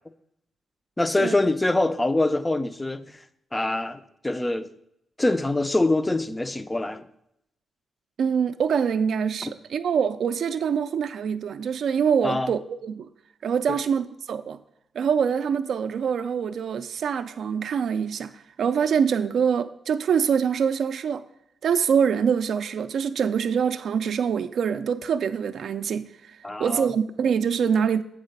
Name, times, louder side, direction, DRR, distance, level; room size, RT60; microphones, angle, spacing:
voice 1, 1.0-3.0 3.5-4.7 5.2-7.0 9.4-9.5 12.2-12.5 13.7-13.8 26.4-26.9, left 2 dB, 10° left, 0.4 m, -24 dB
voice 2, 8.2-13.1 13.4-14.6 14.9-21.2 21.6-28.0, right 7 dB, 60° right, 0.3 m, -25 dB
8.2 x 4.7 x 6.5 m
wide cardioid pair, 175°, 0 cm